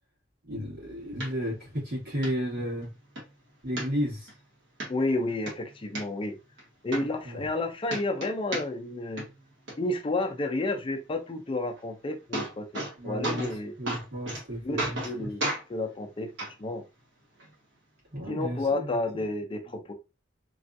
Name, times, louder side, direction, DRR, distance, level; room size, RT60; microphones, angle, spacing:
voice 1, 0.4-2.9 3.6-4.3 6.9-7.5 13.0-13.5 13.8-15.3 18.1-18.9, equal, 60° right, 1.9 m, -33 dB
sound 1, 1.2-1.3 1.8-1.9 2.2-2.3 2.8-3.2 3.8-4.3 4.8-4.9 5.3-6.0 6.6-6.7 6.9-7.6 7.9-8.9 9.2-9.7 11.8-11.9 12.1-12.9 13.2-13.6 13.9-14.4 14.8-15.1 15.4-15.6 16.4-16.5 17.4-17.5, right 1 dB, 85° right, 1.3 m, -33 dB
voice 2, 4.9-6.4 6.8-9.3 9.8-13.7 14.6-15.4 15.7-16.3 16.6-16.8 18.3-19.9, left 2 dB, 30° left, 0.4 m, -31 dB
3.3 x 2.3 x 2.5 m
head